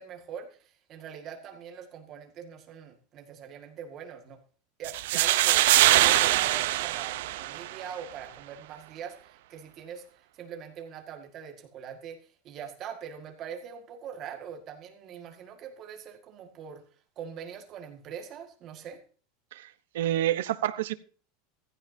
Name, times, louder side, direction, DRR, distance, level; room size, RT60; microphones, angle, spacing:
voice 1, 0.0-4.4 4.8-16.8 17.2-19.0, right 7 dB, 25° right, 4 dB, 1.9 m, -42 dB
sound 1, 4.8-7.9, right 16 dB, 65° right, 0.7 m, -23 dB
voice 2, 19.5-20.9, right 12 dB, 85° right, 12 dB, 1.0 m, -29 dB
15.5 x 15.0 x 2.8 m, 0.39 s
supercardioid pair, 180°, 0 cm